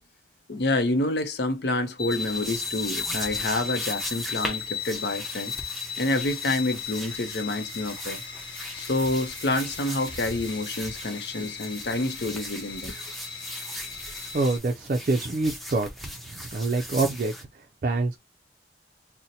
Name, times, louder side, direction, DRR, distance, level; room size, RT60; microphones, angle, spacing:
voice 1, 0.5-5.5 6.0-8.2 8.7-13.0, left 2 dB, 70° left, 0.6 m, -28 dB
sound 1, 2.0-14.6, left 6 dB, 30° left, 1.2 m, -36 dB
sound 2, 2.1-17.4, equal, ahead, 0.6 m, -39 dB
voice 2, 14.3-15.9 16.3-18.2, right 3 dB, 45° right, 0.4 m, -26 dB
2.7 x 2.1 x 3.9 m
head